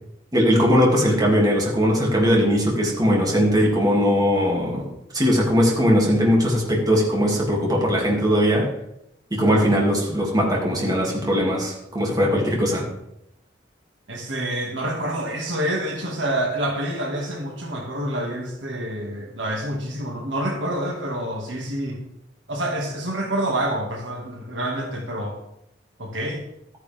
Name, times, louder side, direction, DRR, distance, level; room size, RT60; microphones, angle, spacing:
voice 1, 0.3-4.9 5.1-8.7 9.3-12.9, equal, 20° right, -2 dB, 2.5 m, -20 dB
voice 2, 14.1-22.0 22.5-25.4 26.0-26.4, right 1 dB, 70° right, 1 dB, 2.1 m, -27 dB
13.5 x 9.6 x 3.5 m, 0.82 s
head